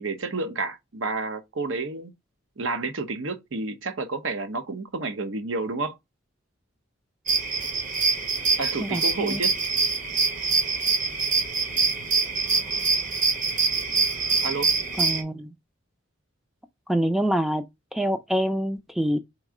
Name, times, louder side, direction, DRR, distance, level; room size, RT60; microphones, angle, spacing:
voice 1, 0.0-2.1 2.6-6.0 8.6-9.5 14.4-14.7, right 3 dB, 80° right, 0.8 m, -30 dB
sound 1, 7.3-15.2, right 4 dB, 40° right, 1.1 m, -24 dB
voice 2, 8.8-9.5 15.0-15.5 16.9-17.6 17.9-19.2, equal, ahead, 0.3 m, -26 dB
3.6 x 3.1 x 4.8 m
head